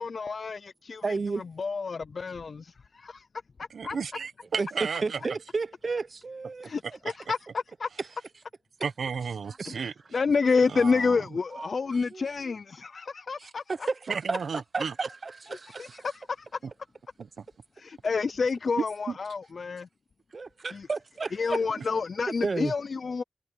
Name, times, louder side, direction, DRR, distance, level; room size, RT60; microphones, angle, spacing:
voice 1, 0.0-3.3 3.6-4.0 6.6-7.9 9.7-13.9 15.7-16.5 17.8-19.9 20.7-20.9 21.3-23.2, left 4 dB, 55° left, 0.4 m, -29 dB
voice 2, 1.0-1.4 4.6-4.7 5.0-6.7 11.6-11.7 12.1-12.5 13.4-14.4 14.7-16.0 20.3-21.6 22.4-22.7, right 4 dB, 45° right, 0.7 m, -32 dB
voice 3, 3.7-5.2 8.8-9.9 10.7-11.2 14.1-15.1 17.2-17.4 19.1-19.2, right 6 dB, 85° right, 1.1 m, -33 dB
wide cardioid pair, 145°, 0 cm